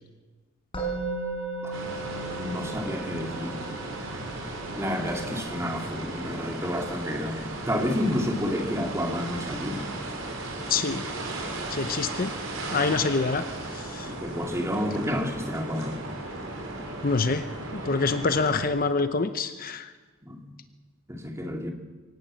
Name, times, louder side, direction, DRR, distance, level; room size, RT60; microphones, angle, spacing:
Musical instrument, 0.7-11.8, right 3 dB, 25° left, 5.1 m, -39 dB
sound 1, 1.7-18.6, right 2 dB, 70° right, 5.3 m, -36 dB
voice 1, 2.4-3.6 4.8-9.8 14.1-16.0 20.2-20.5 21.1-21.7, left 1 dB, 15° right, 3 dB, 2.5 m, -30 dB
voice 2, 10.7-11.0 11.7-12.3 12.7-13.4 13.7-14.1 17.0-19.9, left 4 dB, 45° left, 10 dB, 0.8 m, -26 dB
24.5 x 17.5 x 7.7 m, 1.3 s
head